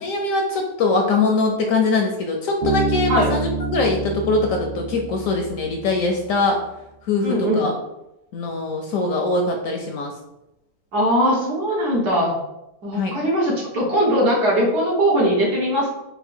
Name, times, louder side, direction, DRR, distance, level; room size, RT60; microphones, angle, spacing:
voice 1, 0.0-6.6 7.1-7.7 8.3-10.1 12.9-13.1, left 3 dB, 70° left, 2 dB, 0.8 m, -22 dB
Bass guitar, 2.6-6.2, right 3 dB, 35° right, 0.9 m, -27 dB
voice 2, 7.2-7.7 10.9-12.3 12.8-15.9, equal, 75° right, -5 dB, 1.9 m, -20 dB
4.3 x 2.1 x 4.2 m, 0.90 s
omnidirectional pair, 1.7 m